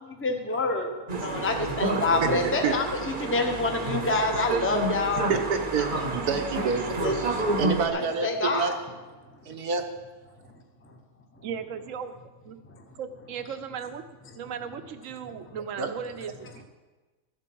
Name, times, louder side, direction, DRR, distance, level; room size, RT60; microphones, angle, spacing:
voice 1, 0.0-5.3 5.8-6.1 6.6-7.4 7.9-8.8 9.3-9.4 10.8-11.0 11.4-11.5 12.6-12.8 15.4-15.6, left 3 dB, 10° left, 3 dB, 0.9 m, -28 dB
sound 1, 1.1-7.9, right 2 dB, 35° right, 1.1 m, -29 dB
voice 2, 2.2-2.7 5.3-7.3 7.6-8.7 9.4-9.8 15.8-15.9, right 5 dB, 85° right, 5 dB, 1.6 m, -28 dB
voice 3, 11.4-12.1 12.4-12.6 13.0-14.0 14.3-16.6, right 7 dB, 60° right, 9 dB, 1.1 m, -36 dB
13.5 x 7.6 x 6.2 m, 1.2 s
omnidirectional pair, 1.6 m